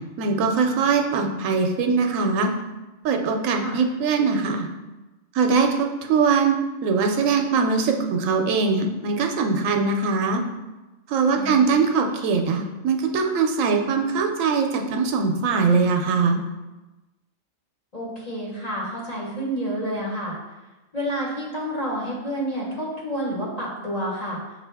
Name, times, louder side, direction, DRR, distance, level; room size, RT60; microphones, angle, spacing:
voice 1, 0.2-2.5 3.0-4.7 5.3-6.6 6.8-10.4 11.1-16.4, right 5 dB, 85° right, 4 dB, 1.0 m, -21 dB
voice 2, 11.3-11.7 17.9-20.4 20.9-24.4, equal, 35° left, -5 dB, 1.1 m, -29 dB
6.3 x 2.5 x 3.4 m, 1.1 s
omnidirectional pair, 1.3 m